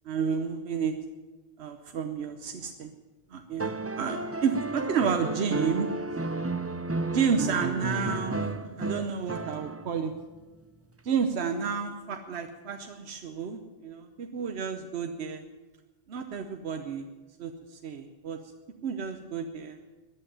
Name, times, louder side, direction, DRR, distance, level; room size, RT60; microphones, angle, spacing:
voice 1, 0.0-1.0 1.6-2.9 3.3-5.9 7.1-10.1 11.0-15.4 16.1-17.0 17.4-18.4 18.8-19.8, right 6 dB, 85° right, 6 dB, 1.1 m, -31 dB
sound 1, 3.6-10.0 11.5-11.6, right 2 dB, 20° right, 0.4 m, -33 dB
13.5 x 8.8 x 9.9 m, 1.2 s
omnidirectional pair, 1.1 m